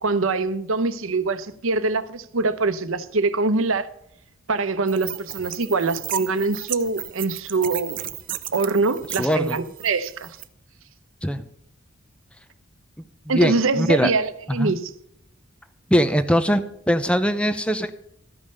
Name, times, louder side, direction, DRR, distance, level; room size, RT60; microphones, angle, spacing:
voice 1, 0.0-3.9 4.5-8.0 8.5-10.4 13.3-14.9, right 3 dB, 75° right, 0.8 m, -24 dB
sound 1, 4.9-10.4, right 12 dB, 40° right, 0.6 m, -35 dB
voice 2, 9.2-9.6 11.2-11.4 13.3-14.1 14.6-14.7 15.9-17.9, equal, 5° left, 0.6 m, -21 dB
13.5 x 5.4 x 6.6 m
head